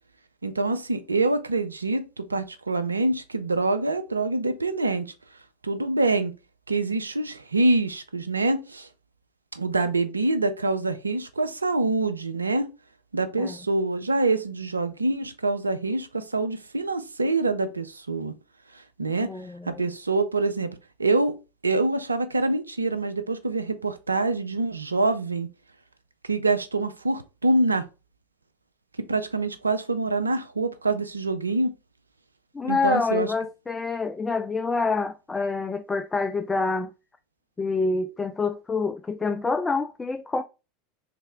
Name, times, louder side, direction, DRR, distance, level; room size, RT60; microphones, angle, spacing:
voice 1, 0.4-5.1 5.6-6.3 6.7-8.9 9.5-12.7 13.1-18.3 19.0-19.3 19.7-20.7 21.0-21.4 21.6-25.5 26.3-27.8 29.1-31.7 32.6-33.3, right 2 dB, 90° right, 0.5 m, -25 dB
voice 2, 19.2-19.9 32.5-36.9 37.6-40.4, left 3 dB, 15° left, 0.3 m, -27 dB
3.3 x 3.2 x 3.5 m
figure-of-eight pair, 85°, 0 cm